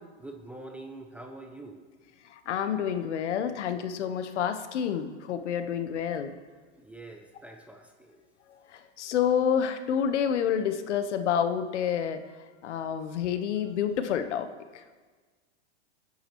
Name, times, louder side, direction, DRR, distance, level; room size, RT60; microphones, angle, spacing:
voice 1, 0.2-1.8 6.8-8.2, right 2 dB, 5° right, 3 dB, 0.4 m, -45 dB
voice 2, 2.3-6.3 8.5-12.2 12.6-14.5 14.7-14.8, left 8 dB, 75° left, 9 dB, 1.2 m, -28 dB
27.0 x 10.0 x 3.1 m, 1.4 s
supercardioid pair, 150°, 35 cm